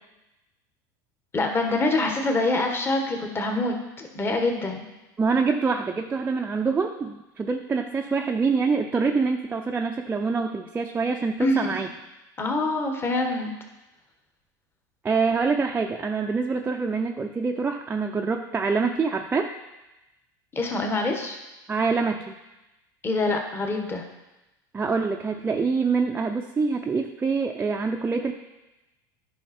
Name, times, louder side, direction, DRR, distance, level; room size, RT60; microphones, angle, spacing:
voice 1, 1.3-4.9 11.4-11.6 12.4-13.5 20.5-21.4 23.0-24.0, left 2 dB, 20° left, 2 dB, 1.4 m, -25 dB
voice 2, 5.2-11.9 15.0-19.5 21.7-22.4 24.7-28.3, right 4 dB, 20° right, 2 dB, 0.6 m, -25 dB
10.0 x 5.6 x 4.3 m, 1.0 s
hypercardioid pair, 100°, 10 cm